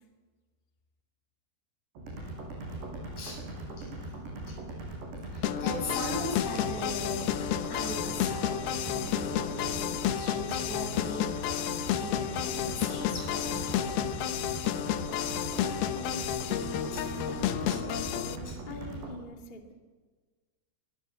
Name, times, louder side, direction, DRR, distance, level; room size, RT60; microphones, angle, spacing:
sound 1, 2.0-19.1, right 2 dB, 90° right, 8.7 m, -40 dB
voice 1, 5.3-14.6 16.4-16.6 16.9-17.8 18.4-18.6, left 1 dB, 45° left, 1 dB, 7.8 m, -40 dB
sound 2, 5.4-18.4, left 11 dB, 75° left, 2.8 m, -31 dB
voice 2, 15.3-19.7, left 2 dB, 20° left, 2 dB, 1.4 m, -44 dB
25.0 x 22.0 x 7.6 m, 1.4 s
omnidirectional pair, 4.8 m